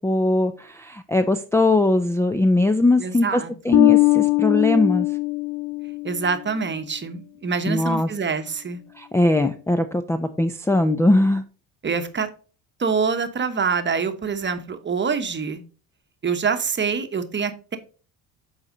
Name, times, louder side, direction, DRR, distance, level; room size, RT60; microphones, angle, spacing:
voice 1, 0.0-5.1 7.7-8.1 9.0-11.4, left 2 dB, 5° left, 5 dB, 0.5 m, -20 dB
voice 2, 3.0-3.8 6.0-8.8 11.8-12.3 12.8-15.6 16.2-17.8, right 5 dB, 30° right, 9 dB, 1.0 m, -25 dB
Bass guitar, 3.7-6.4, left 22 dB, 85° left, 0.5 m, -20 dB
7.9 x 4.2 x 3.8 m, 0.37 s
supercardioid pair, 80°, 39 cm